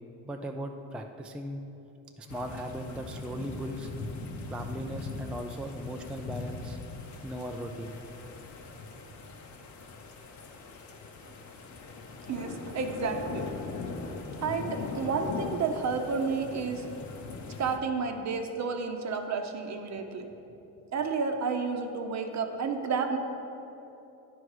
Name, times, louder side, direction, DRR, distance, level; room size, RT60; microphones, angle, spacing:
voice 1, 0.3-1.6 2.2-3.9 4.5-6.8 7.2-7.9, equal, 5° right, 3 dB, 0.4 m, -38 dB
sound 1, 2.3-17.8, left 3 dB, 50° left, 0.9 m, -40 dB
voice 2, 12.3-13.5 14.4-16.8 17.6-20.3 20.9-23.2, right 5 dB, 50° right, 5 dB, 0.8 m, -31 dB
9.8 x 4.7 x 4.8 m, 3.0 s
supercardioid pair, 85°, 36 cm